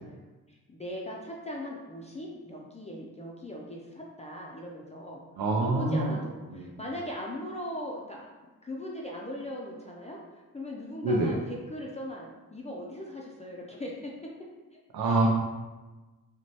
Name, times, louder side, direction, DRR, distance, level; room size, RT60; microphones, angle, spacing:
voice 1, 0.0-5.2 5.5-8.3 8.6-14.3 14.7-15.3, left 1 dB, 20° left, -3 dB, 0.4 m, -40 dB
voice 2, 5.4-6.1 6.5-6.8 11.0-11.4 14.9-15.3, right 2 dB, 85° right, -1 dB, 0.6 m, -26 dB
5.9 x 2.2 x 2.8 m, 1.2 s
wide cardioid pair, 160°, 35 cm